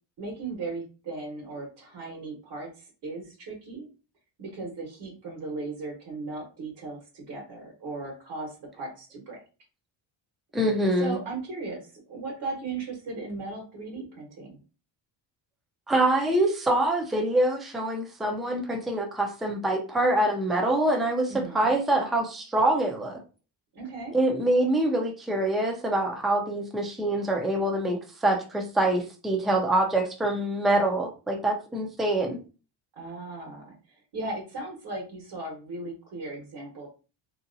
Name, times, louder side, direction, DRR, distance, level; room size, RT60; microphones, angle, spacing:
voice 1, 0.2-3.9 4.4-9.4 11.0-14.6 21.3-21.7 23.7-24.1 32.9-33.7 34.1-36.9, right 3 dB, 60° right, 0 dB, 1.3 m, -37 dB
voice 2, 10.5-11.2 15.9-23.2 24.1-32.4, right 1 dB, ahead, 1 dB, 0.5 m, -25 dB
2.9 x 2.8 x 2.5 m, 0.34 s
cardioid pair, 125°, 46 cm